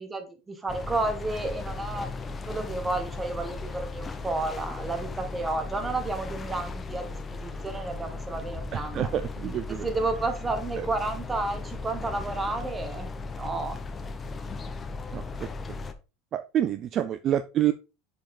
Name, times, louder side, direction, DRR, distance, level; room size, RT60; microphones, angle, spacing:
voice 1, 0.0-2.1 2.4-7.2 7.4-9.0 9.7-13.8, right 2 dB, 15° right, 7 dB, 1.6 m, -31 dB
sound 1, 0.7-15.9, left 3 dB, 20° left, 0.9 m, -37 dB
voice 2, 8.7-9.9 10.8-10.9 15.1-15.5 16.3-17.7, right 11 dB, 40° right, 11 dB, 0.4 m, -28 dB
6.5 x 5.0 x 3.9 m, 0.30 s
supercardioid pair, 115°, 0 cm